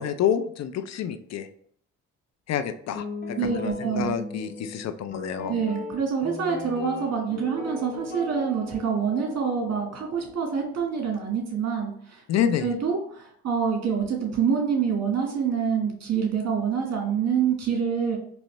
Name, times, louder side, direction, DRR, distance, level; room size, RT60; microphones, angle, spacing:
voice 1, 0.0-1.5 2.5-5.6 12.3-12.7, left 9 dB, 60° left, 10 dB, 0.5 m, -28 dB
Guitar, 2.9-11.1, left 2 dB, 30° left, 1.0 m, -38 dB
voice 2, 3.4-4.2 5.5-12.2 12.6-18.2, right 6 dB, 60° right, 1 dB, 1.6 m, -26 dB
4.0 x 3.1 x 3.2 m, 0.64 s
cardioid pair, 90°, 30 cm